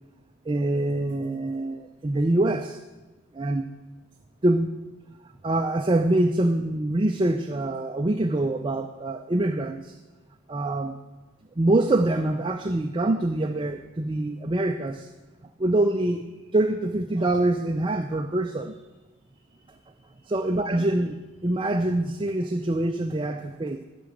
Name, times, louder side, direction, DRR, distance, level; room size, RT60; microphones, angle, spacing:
voice 1, 0.5-2.8 3.3-3.7 4.4-4.7 5.4-10.0 10.5-11.0 11.6-15.1 15.6-16.2 16.5-18.8 19.7-19.9 20.2-23.8, right 1 dB, 25° right, 5 dB, 0.4 m, -25 dB
12.5 x 6.0 x 8.4 m, 1.2 s
head